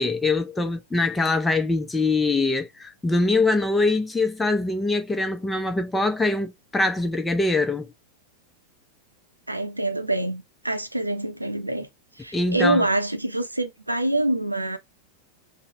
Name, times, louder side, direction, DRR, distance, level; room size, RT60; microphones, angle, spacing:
voice 1, 0.0-7.9 12.3-12.8, left 3 dB, 10° left, 0.5 m, -23 dB
voice 2, 9.5-11.9 12.2-14.8, right 2 dB, 85° right, 0.6 m, -25 dB
3.8 x 2.1 x 2.8 m
figure-of-eight pair, 90°, 0 cm